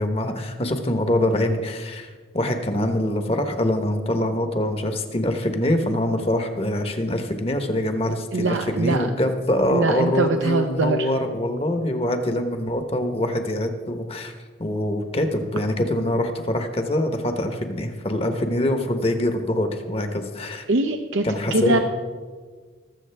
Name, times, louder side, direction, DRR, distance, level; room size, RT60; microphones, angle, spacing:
voice 1, 0.0-14.3 14.6-20.6 21.2-21.8, left 1 dB, 30° left, 7 dB, 0.9 m, -24 dB
voice 2, 8.3-9.1 9.7-11.1 20.7-21.2 21.5-21.8, right 3 dB, 75° right, 5 dB, 0.5 m, -22 dB
20.0 x 7.4 x 3.4 m, 1.5 s
head